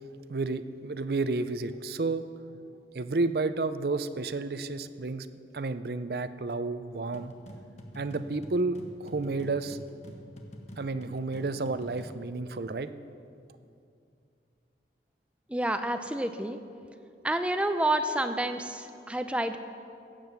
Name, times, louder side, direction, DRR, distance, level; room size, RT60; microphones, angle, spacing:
voice 1, 0.3-2.3 2.9-5.3 5.5-7.3 7.9-9.8 10.8-12.9, right 3 dB, 60° right, 12 dB, 0.5 m, -31 dB
sound 1, 7.1-12.3, equal, 40° left, 1.2 m, -47 dB
voice 2, 15.5-16.6 17.2-19.6, right 1 dB, 5° right, 8 dB, 0.4 m, -29 dB
16.5 x 7.8 x 6.9 m, 2.6 s
head